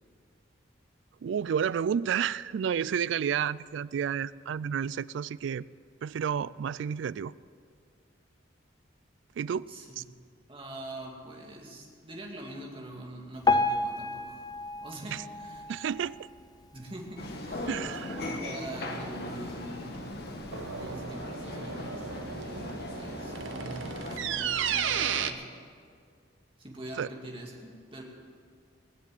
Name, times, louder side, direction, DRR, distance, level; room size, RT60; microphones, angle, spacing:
voice 1, 1.2-5.7 6.0-7.3 9.4-9.7 10.0-10.1 15.7-16.2 17.7-18.2 27.0-27.1, right 8 dB, 70° right, 20 dB, 0.3 m, -30 dB
voice 2, 9.7-10.2 10.5-14.4 14.8-15.7 16.7-17.7 18.1-20.5 20.8-25.5 26.6-28.0, right 1 dB, 30° right, -1 dB, 2.2 m, -44 dB
Piano, 13.4-16.6 17.1-17.2 17.5-17.6 18.3-18.4 19.0-19.1, left 3 dB, 20° left, 0.5 m, -30 dB
sound 1, 17.2-24.2, left 1 dB, 55° left, 1.5 m, -38 dB
sound 2, 19.9-25.3, right 7 dB, 85° right, 0.7 m, -34 dB
19.5 x 7.4 x 7.5 m, 2.2 s
head